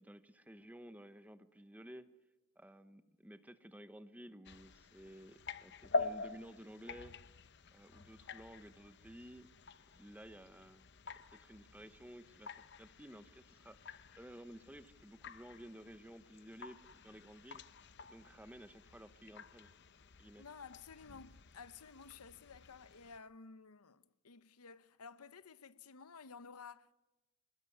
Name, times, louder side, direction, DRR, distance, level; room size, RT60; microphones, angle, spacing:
voice 1, 0.0-2.1 2.6-7.2 7.7-9.5 9.9-10.9 11.3-19.7 20.2-20.5, equal, 5° right, 0.9 m, -54 dB
sound 1, 4.5-23.2, left 3 dB, 50° left, 0.8 m, -47 dB
voice 2, 20.4-26.9, left 5 dB, 80° left, 0.9 m, -54 dB
27.0 x 19.5 x 9.6 m
head